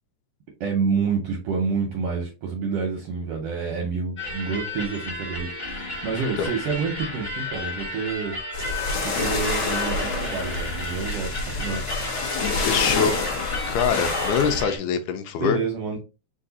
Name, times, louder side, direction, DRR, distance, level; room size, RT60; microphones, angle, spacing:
voice 1, 0.6-8.4 9.0-11.3 11.6-11.8 15.4-16.0, right 5 dB, 75° right, 1 dB, 1.4 m, -28 dB
sound 1, 4.2-14.8, left 2 dB, 30° left, 1.1 m, -33 dB
sound 2, 8.5-14.6, left 3 dB, 65° left, 1.1 m, -27 dB
voice 2, 12.7-13.1 13.7-15.6, left 7 dB, 80° left, 7 dB, 1.9 m, -24 dB
4.6 x 2.5 x 3.9 m, 0.30 s
omnidirectional pair, 3.5 m